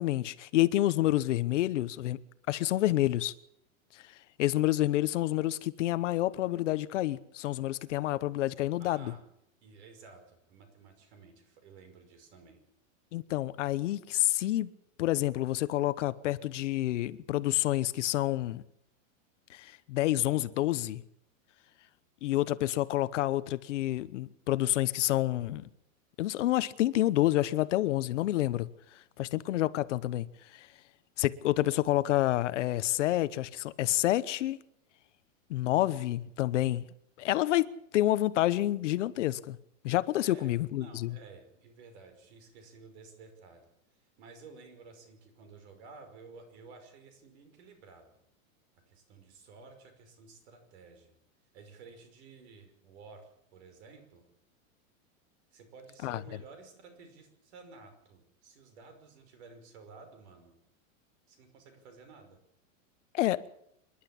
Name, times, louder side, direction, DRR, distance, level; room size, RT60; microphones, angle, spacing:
voice 1, 0.0-2.2 2.5-3.3 3.9-9.1 13.1-14.7 15.0-18.6 19.5-21.0 22.2-25.7 26.2-30.7 31.2-34.6 35.5-36.9 37.2-39.6 39.8-41.1 56.0-56.2 63.1-63.4, left 15 dB, 60° left, 1.0 m, -28 dB
voice 2, 8.8-9.2 9.6-12.6 40.2-43.7 44.0-48.2 48.9-51.1 51.5-54.2 55.5-60.5 61.3-62.4, right 4 dB, 55° right, 5.6 m, -53 dB
26.5 x 11.5 x 8.7 m
supercardioid pair, 170°, 40 cm